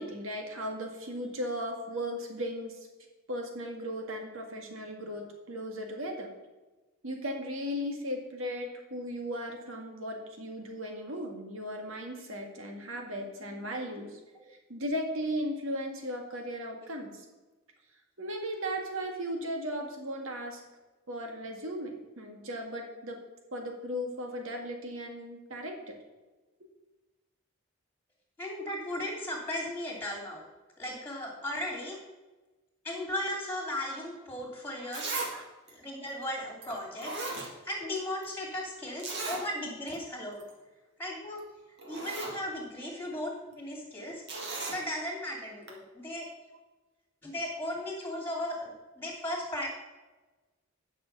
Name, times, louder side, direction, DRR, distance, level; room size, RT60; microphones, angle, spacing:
voice 1, 0.0-2.8 3.3-6.3 7.0-14.2 14.5-17.2 18.2-20.6 21.1-23.2 23.5-26.0 34.8-34.9 35.3-35.4 46.5-46.6, equal, 70° right, 2 dB, 2.0 m, -36 dB
voice 2, 28.4-30.4 30.8-32.0 32.8-35.2 35.7-37.2 37.6-40.4 41.0-41.4 41.9-44.2 44.7-46.3 47.2-49.7, left 1 dB, 10° left, 0 dB, 2.7 m, -36 dB
Zipper (clothing), 34.4-34.5 34.9-35.3 35.7-35.8 36.6-36.7 37.0-38.0 38.2-38.3 39.0-39.4 39.9-40.0 40.3-40.5 41.4-41.5 41.8-42.4 44.3-44.8 45.7-45.8, right 3 dB, 50° right, 1.9 m, -36 dB
10.0 x 6.2 x 5.4 m, 1.2 s
head